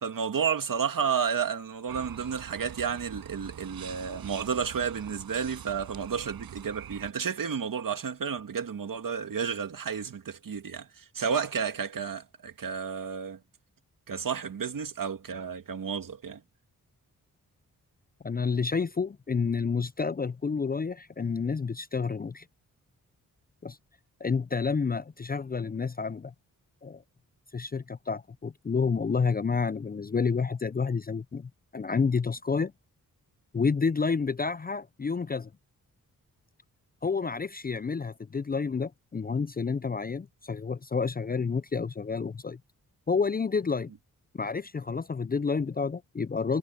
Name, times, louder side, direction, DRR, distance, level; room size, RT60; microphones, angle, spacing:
voice 1, 0.0-13.4 14.1-16.4, right 6 dB, 65° right, 2.2 m, -31 dB
sound 1, 1.9-7.1, right 9 dB, 90° right, 5.9 m, -44 dB
voice 2, 18.2-22.5 23.6-23.8 24.2-26.3 26.8-27.0 27.5-32.7 33.5-35.5 37.0-42.6 43.1-43.9 44.3-46.6, left 5 dB, 25° left, 0.5 m, -29 dB
cardioid pair, 55°, 36 cm